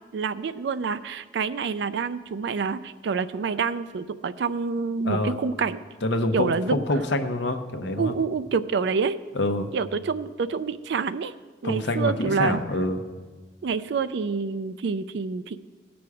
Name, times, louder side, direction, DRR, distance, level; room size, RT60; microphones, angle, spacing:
voice 1, 0.1-5.8 6.3-6.8 8.0-9.2 9.7-11.3 11.6-12.6 13.6-15.6, right 5 dB, 65° right, 13 dB, 0.4 m, -27 dB
voice 2, 6.0-8.1 9.3-9.7 11.6-13.0, left 2 dB, 70° left, 7 dB, 0.8 m, -26 dB
17.0 x 6.0 x 4.8 m, 1.4 s
head